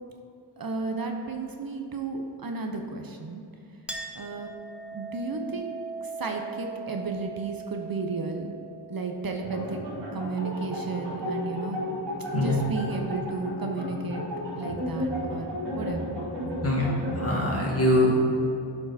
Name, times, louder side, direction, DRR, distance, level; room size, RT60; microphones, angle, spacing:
voice 1, 0.6-3.4 4.1-4.5 4.9-5.7 6.0-8.5 8.9-9.8 10.1-11.8 12.3-14.2 14.6-16.2, right 3 dB, 55° right, 3 dB, 0.8 m, -33 dB
Chink clink, 3.9-10.9, right 4 dB, 5° right, 0.8 m, -41 dB
sound 1, 9.4-17.6, equal, 85° right, 1.7 m, -33 dB
voice 2, 17.2-18.2, left 1 dB, 35° left, -4 dB, 1.9 m, -23 dB
11.5 x 4.6 x 4.2 m, 2.6 s
wide cardioid pair, 85°, 42 cm